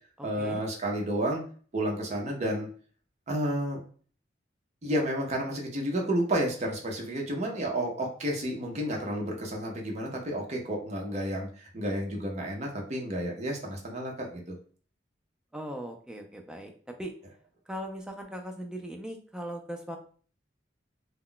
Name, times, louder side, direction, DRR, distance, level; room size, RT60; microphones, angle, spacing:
voice 1, 0.2-1.4 1.7-2.7 3.3-3.8 4.8-14.6, right 1 dB, 40° right, 0 dB, 0.6 m, -31 dB
voice 2, 15.5-16.7 17.0-17.1 17.7-20.0, equal, 5° right, 3 dB, 0.3 m, -39 dB
2.2 x 2.1 x 3.7 m, 0.44 s
head